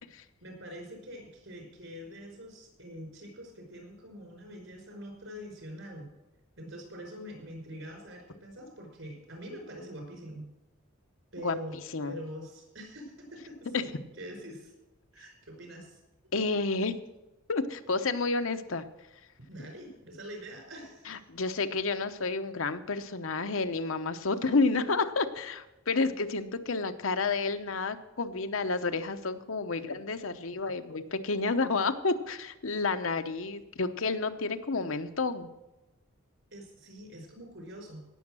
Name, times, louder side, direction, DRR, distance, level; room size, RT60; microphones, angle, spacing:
voice 1, 0.4-6.1 6.6-10.4 11.3-11.8 12.0-13.9 14.2-14.7 15.1-16.0 19.5-21.2 24.5-24.6 36.5-38.1, equal, 65° right, 2 dB, 5.1 m, -44 dB
voice 2, 16.3-17.0 17.5-18.8 19.6-19.7 21.1-35.5, left 3 dB, 70° left, 9 dB, 0.9 m, -30 dB
17.5 x 7.1 x 6.2 m, 1.0 s
head